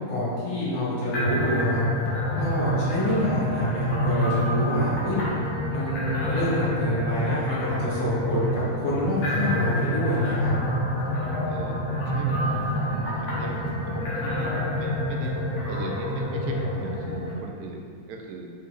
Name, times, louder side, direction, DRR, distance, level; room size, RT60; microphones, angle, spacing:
voice 1, 0.1-1.8 2.4-5.2 5.7-10.5, left 1 dB, 55° left, -9 dB, 1.7 m, -27 dB
sound 1, 1.1-17.3, equal, 85° left, 1.3 m, -27 dB
voice 2, 11.5-15.3 15.7-18.5, right 2 dB, 85° right, 1 dB, 1.1 m, -39 dB
4.2 x 3.4 x 3.2 m, 2.2 s
omnidirectional pair, 1.6 m